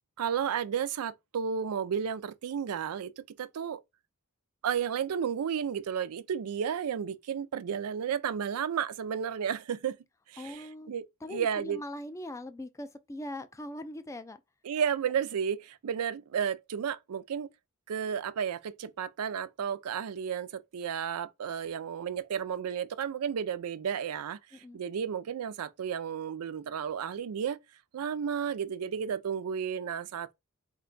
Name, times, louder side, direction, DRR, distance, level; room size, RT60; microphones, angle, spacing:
voice 1, 0.2-3.8 4.6-10.0 10.3-11.8 14.6-17.5 17.9-27.6 27.9-30.3, right 7 dB, 80° right, 0.4 m, -33 dB
voice 2, 10.4-10.9 11.2-14.4 24.5-24.8, left 1 dB, 15° left, 0.3 m, -41 dB
4.3 x 2.2 x 3.8 m
head